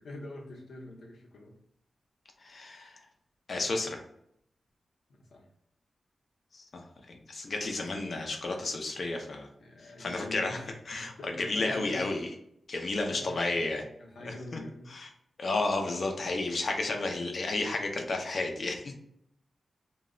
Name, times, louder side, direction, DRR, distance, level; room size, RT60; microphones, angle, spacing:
voice 1, 0.0-1.6 5.2-5.5 9.5-10.7 11.2-12.1 13.2-14.9, left 1 dB, 85° left, -1 dB, 0.7 m, -44 dB
voice 2, 2.4-3.0 3.5-4.0 6.5-9.5 10.0-10.6 10.9-12.3 12.7-13.8 14.2-14.3 14.9-15.1 15.4-18.9, left 2 dB, 45° left, 3 dB, 0.4 m, -32 dB
2.3 x 2.0 x 3.5 m, 0.74 s
wide cardioid pair, 160°, 0 cm